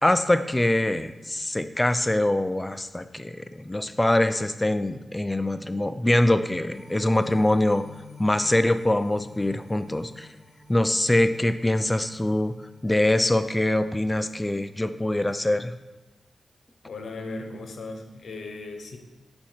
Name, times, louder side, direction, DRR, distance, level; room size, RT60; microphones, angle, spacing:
voice 1, 0.0-7.8 8.2-10.3 10.7-12.6 12.8-15.7, left 1 dB, 15° left, 11 dB, 0.4 m, -23 dB
sound 1, 6.7-15.1 15.5-15.6, left 3 dB, 45° left, 1.6 m, -52 dB
voice 2, 16.8-19.0, left 3 dB, 75° left, 5 dB, 0.8 m, -37 dB
5.7 x 4.3 x 4.4 m, 1.1 s
cardioid pair, 65°, 0 cm